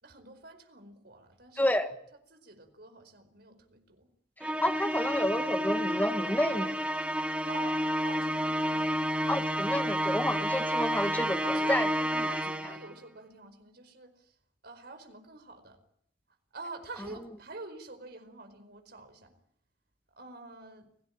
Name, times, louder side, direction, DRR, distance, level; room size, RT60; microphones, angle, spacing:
voice 1, 0.0-1.7 2.3-4.1 7.4-9.0 11.4-11.8 12.1-14.3 14.6-15.8 16.5-19.3 20.2-20.9, right 3 dB, 55° right, 8 dB, 4.8 m, -47 dB
voice 2, 1.6-2.0 4.4-6.8 9.3-12.3, left 1 dB, 10° left, 7 dB, 1.7 m, -30 dB
Musical instrument, 4.4-12.9, equal, 5° right, 1.2 m, -30 dB
30.0 x 17.5 x 8.8 m, 0.69 s
head